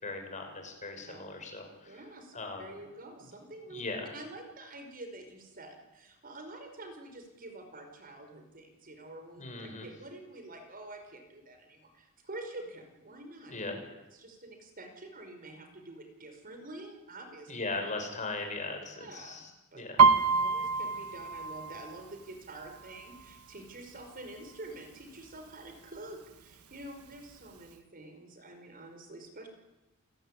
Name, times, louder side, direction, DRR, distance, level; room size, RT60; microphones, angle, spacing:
voice 1, 0.0-2.0 2.3-2.7 3.7-4.1 9.4-9.9 13.5-13.8 17.5-20.0, left 3 dB, 35° left, 3 dB, 6.5 m, -38 dB
voice 2, 1.9-3.8 4.1-13.5 14.1-17.5 19.0-19.8 20.3-29.5, right 2 dB, 40° right, 5 dB, 5.1 m, -47 dB
Piano, 20.0-23.6 24.0-24.4 24.7-25.4 26.0-26.1 26.3-27.3 27.7-27.8, right 5 dB, 90° right, 1.4 m, -27 dB
29.0 x 20.0 x 10.0 m, 1.0 s
head